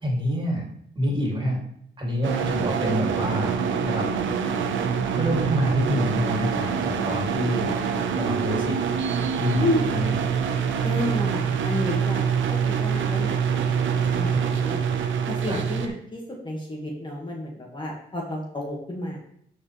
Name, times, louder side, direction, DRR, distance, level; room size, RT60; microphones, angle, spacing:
voice 1, 0.0-0.7 0.9-1.6 2.0-4.1 5.1-7.9 8.1-8.8 9.4-10.2 15.5-15.6, equal, 25° right, -1 dB, 2.8 m, -27 dB
sound 1, 2.2-15.9, right 6 dB, 75° right, 1.0 m, -25 dB
voice 2, 9.6-9.9 10.8-14.8 15.3-19.2, left 1 dB, 25° left, -1 dB, 1.8 m, -31 dB
12.5 x 4.9 x 3.3 m, 0.69 s
cardioid pair, 90°, 20 cm